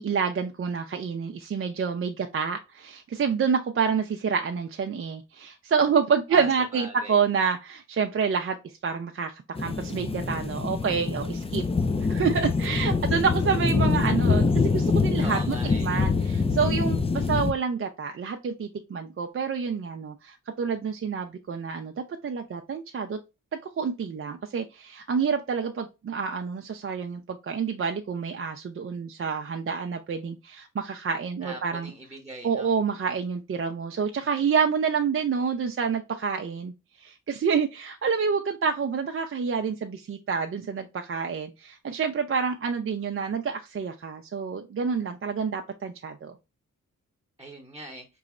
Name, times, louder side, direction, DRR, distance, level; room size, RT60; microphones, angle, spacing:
voice 1, 0.0-11.6 12.1-23.2 23.8-31.9 32.4-36.7 37.0-46.3, right 6 dB, 40° right, 4 dB, 0.5 m, -28 dB
voice 2, 6.3-7.2 15.1-16.0 31.4-32.7 47.4-48.1, right 1 dB, 10° right, 3 dB, 1.0 m, -41 dB
sound 1, 9.6-17.5, left 4 dB, 20° left, 0.4 m, -25 dB
3.9 x 3.0 x 2.4 m, 0.26 s
cardioid pair, 50°, 32 cm